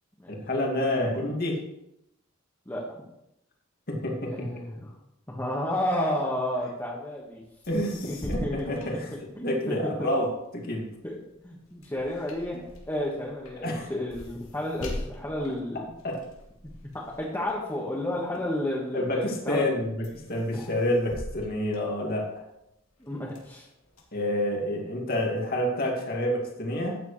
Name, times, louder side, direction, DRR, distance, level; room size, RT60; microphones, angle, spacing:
voice 1, 0.3-1.6 3.9-4.5 7.7-8.0 8.2-9.1 9.4-10.9 13.6-13.9 16.0-16.2 18.9-22.3 24.1-27.0, left 1 dB, 50° left, 0 dB, 2.3 m, -28 dB
voice 2, 4.3-4.9 5.3-7.4 8.1-9.0 9.4-9.9 11.0-11.2 11.4-15.8 16.9-19.7 20.5-20.7 23.0-23.7, left 1 dB, 15° left, -4 dB, 1.5 m, -32 dB
sound 1, 7.4-7.5 7.6-9.7 10.2-18.9 19.4-19.7 20.0-22.5 23.0-24.0, left 1 dB, 90° left, 2.7 m, -42 dB
13.0 x 9.2 x 3.2 m, 0.84 s
head